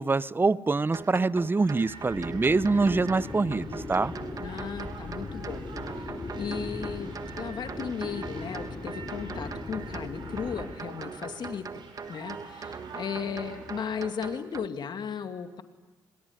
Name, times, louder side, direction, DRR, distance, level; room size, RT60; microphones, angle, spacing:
voice 1, 0.0-4.1, right 3 dB, 25° right, 18 dB, 0.8 m, -25 dB
sound 1, 0.9-14.7, right 5 dB, 40° right, 1.3 m, -42 dB
sound 2, 1.5-14.0, right 5 dB, 55° right, 6.8 m, -47 dB
sound 3, 2.1-10.8, left 3 dB, 35° left, 3.3 m, -39 dB
voice 2, 4.4-5.6 5.9-6.1 6.3-11.8 12.1-15.6, left 7 dB, 55° left, 7 dB, 2.5 m, -36 dB
26.5 x 21.0 x 9.8 m, 1.1 s
hypercardioid pair, 55°, 9 cm